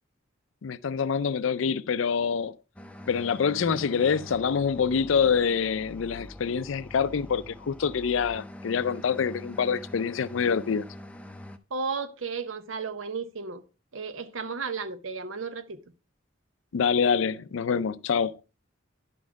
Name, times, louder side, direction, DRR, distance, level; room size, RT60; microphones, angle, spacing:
voice 1, 0.6-2.6 3.1-10.8 16.7-18.3, left 6 dB, 75° left, 0.4 m, -26 dB
sound 1, 2.8-11.6, left 1 dB, 5° left, 0.5 m, -44 dB
voice 2, 11.7-13.6 13.9-15.8, right 5 dB, 85° right, 0.8 m, -33 dB
10.5 x 4.3 x 4.6 m
head